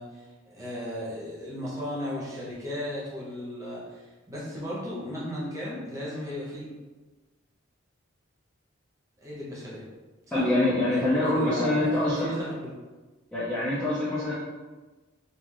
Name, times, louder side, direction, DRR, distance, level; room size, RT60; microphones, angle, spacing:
voice 1, 0.0-6.7 9.2-9.8 10.3-10.4 10.9-12.7, left 1 dB, 15° right, -7 dB, 0.8 m, -35 dB
voice 2, 10.3-12.3 13.3-14.3, left 1 dB, 5° left, -10 dB, 0.4 m, -25 dB
3.1 x 2.4 x 2.4 m, 1.3 s
head